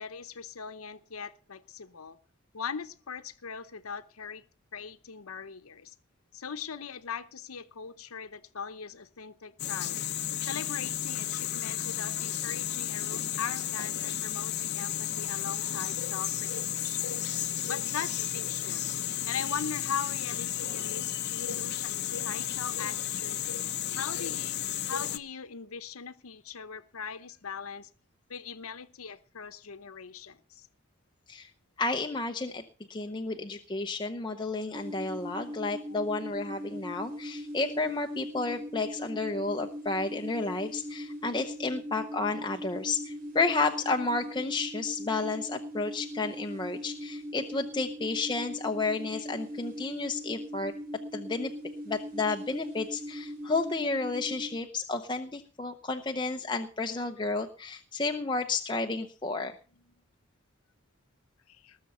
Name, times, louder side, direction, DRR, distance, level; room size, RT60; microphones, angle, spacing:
voice 1, 0.0-2.2 2.5-4.4 4.7-5.9 6.3-10.0 10.4-17.1 17.4-18.8 19.3-23.4 24.0-24.6 24.9-27.9 28.3-30.7 34.3-34.5 35.9-36.0 59.9-60.0 61.5-61.8, left 6 dB, 85° left, 12 dB, 0.8 m, -40 dB
sound 1, 9.6-25.2, left 11 dB, 50° left, 0.8 m, -33 dB
voice 2, 31.8-32.6 32.9-50.7 51.1-51.5 51.9-59.6, left 3 dB, 20° left, 4 dB, 0.8 m, -31 dB
sound 2, 34.7-54.5, equal, 45° right, 3.8 m, -40 dB
19.5 x 6.9 x 5.5 m, 0.39 s
head